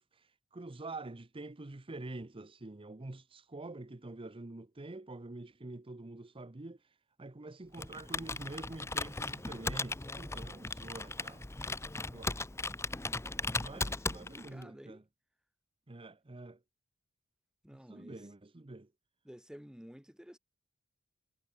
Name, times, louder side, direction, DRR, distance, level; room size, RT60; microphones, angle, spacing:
voice 1, 0.0-11.7 12.1-12.7 13.6-15.0 15.9-16.6 17.7-18.9, right 2 dB, 25° right, 0.8 m, -47 dB
Computer keyboard, 7.7-14.6, left 3 dB, 10° left, 0.8 m, -37 dB
voice 2, 11.7-12.1 13.7-13.8 14.1-15.0 17.6-18.1 19.2-20.4, equal, 5° right, 1.3 m, -52 dB
head